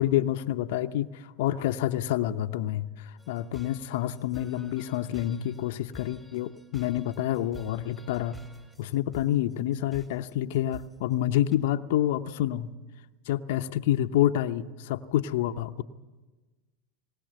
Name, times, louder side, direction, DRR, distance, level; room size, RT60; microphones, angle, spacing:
voice 1, 0.0-8.4 8.8-12.7 13.3-15.8, left 12 dB, 70° left, 9 dB, 0.7 m, -28 dB
sound 1, 3.2-11.6, left 1 dB, 10° right, 3.9 m, -51 dB
20.0 x 19.5 x 7.7 m, 1.2 s
hypercardioid pair, 100°, 0 cm